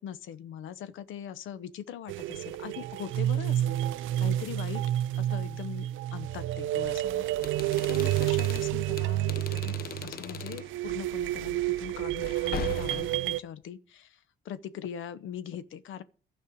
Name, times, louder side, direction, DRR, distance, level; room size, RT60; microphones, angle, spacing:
voice 1, 0.0-4.8 5.2-7.3 7.9-9.8 10.0-16.0, left 9 dB, 80° left, 0.9 m, -41 dB
sound 1, 2.1-13.4, right 14 dB, 80° right, 0.4 m, -30 dB
sound 2, 7.3-10.7 12.2-13.3, left 10 dB, 50° left, 0.5 m, -40 dB
12.5 x 5.5 x 8.5 m
cardioid pair, 90°, 20 cm